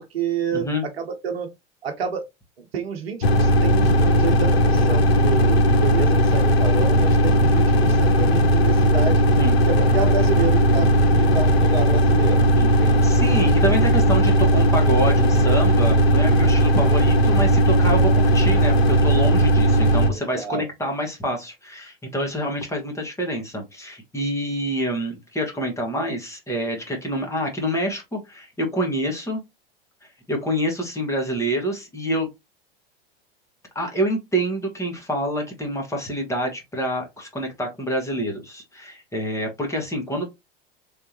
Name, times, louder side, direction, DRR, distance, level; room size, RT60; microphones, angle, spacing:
voice 1, 0.0-0.7 1.0-1.5 1.8-2.2 2.6-9.2 9.6-12.5 12.8-13.1 20.1-20.7, right 5 dB, 75° right, 0.9 m, -29 dB
voice 2, 0.5-0.9 9.4-9.5 12.5-29.4 30.3-32.3 33.8-40.2, equal, 10° left, 1.8 m, -27 dB
sound 1, 3.2-20.1, right 1 dB, 80° left, 0.8 m, -17 dB
3.5 x 3.3 x 2.9 m
hypercardioid pair, 90°, 30 cm